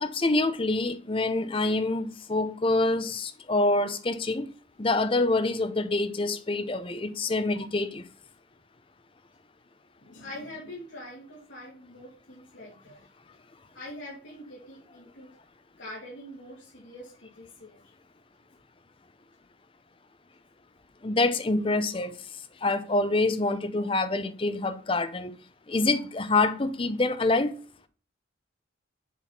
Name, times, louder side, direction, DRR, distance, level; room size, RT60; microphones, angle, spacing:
voice 1, 0.0-4.5 4.8-8.0 21.0-22.2 22.6-25.4 25.7-27.5, left 2 dB, 25° left, 0.6 m, -26 dB
voice 2, 10.0-13.0 13.7-15.3 15.8-17.8, left 1 dB, 70° left, 2.4 m, -44 dB
7.1 x 4.1 x 5.7 m
head